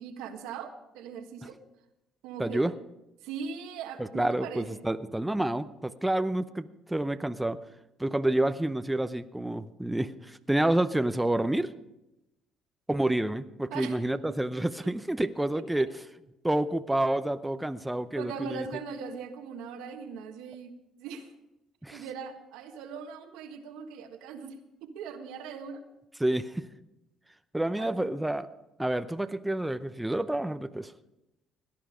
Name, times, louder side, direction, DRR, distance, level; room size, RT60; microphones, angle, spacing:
voice 1, 0.0-1.6 2.2-2.8 3.2-4.9 13.7-14.0 14.8-14.9 15.5-15.9 18.2-21.3 21.9-25.8 27.8-28.1, right 6 dB, 85° right, 6 dB, 1.5 m, -40 dB
voice 2, 2.4-2.7 4.0-7.6 8.0-11.7 12.9-15.9 16.4-18.7 21.8-22.0 26.2-26.7 27.5-28.5 28.8-30.9, right 1 dB, 10° right, 11 dB, 0.7 m, -29 dB
17.5 x 10.5 x 5.1 m, 0.91 s
supercardioid pair, 75°, 0 cm